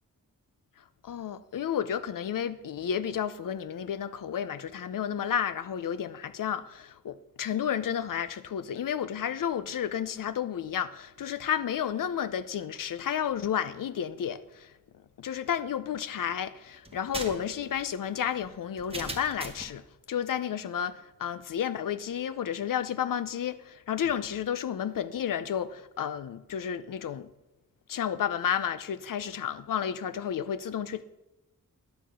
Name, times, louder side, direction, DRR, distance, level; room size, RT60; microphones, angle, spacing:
voice 1, 1.0-14.7 15.2-19.8 20.1-27.3 27.9-31.0, left 9 dB, 70° left, 0.6 m, -31 dB
sound 1, 16.8-19.8, right 2 dB, 15° right, 1.2 m, -40 dB
10.5 x 6.9 x 6.2 m
wide cardioid pair, 105°, 34 cm